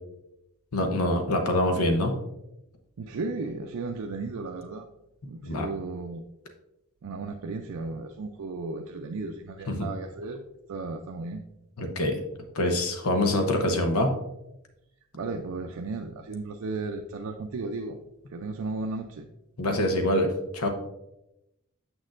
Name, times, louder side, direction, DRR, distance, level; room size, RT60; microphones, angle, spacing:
voice 1, 0.7-2.2 5.4-5.7 9.7-9.9 11.8-12.2 12.5-14.1 19.6-20.7, left 1 dB, 85° left, 5 dB, 0.8 m, -25 dB
voice 2, 3.0-4.9 5.2-6.2 7.0-10.4 10.7-11.4 15.1-18.0 18.3-19.2, right 3 dB, 80° right, 3 dB, 0.4 m, -34 dB
7.3 x 6.2 x 2.5 m, 0.89 s
head